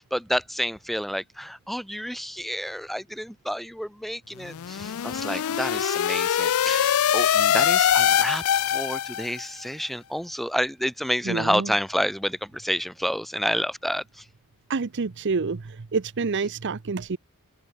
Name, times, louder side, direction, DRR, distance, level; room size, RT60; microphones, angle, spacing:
voice 1, 0.0-14.3, equal, ahead, 7.2 m, -29 dB
sound 1, 4.4-9.4, left 9 dB, 85° left, 0.4 m, -23 dB
voice 2, 11.3-11.7 14.7-15.6 15.9-17.2, right 4 dB, 60° right, 0.6 m, -27 dB
open air
head